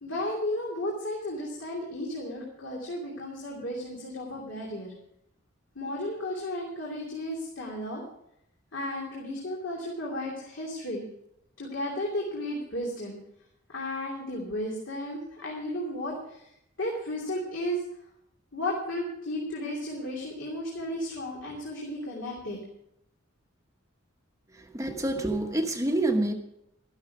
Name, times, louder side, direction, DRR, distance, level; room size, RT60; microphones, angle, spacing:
voice 1, 0.0-4.9 5.7-8.0 8.7-11.1 11.6-13.2 13.7-16.5 16.8-17.8 18.5-22.6, left 1 dB, 65° left, -3 dB, 2.9 m, -34 dB
voice 2, 24.5-26.3, right 1 dB, 15° right, 4 dB, 1.1 m, -27 dB
13.0 x 12.0 x 4.8 m, 0.76 s
head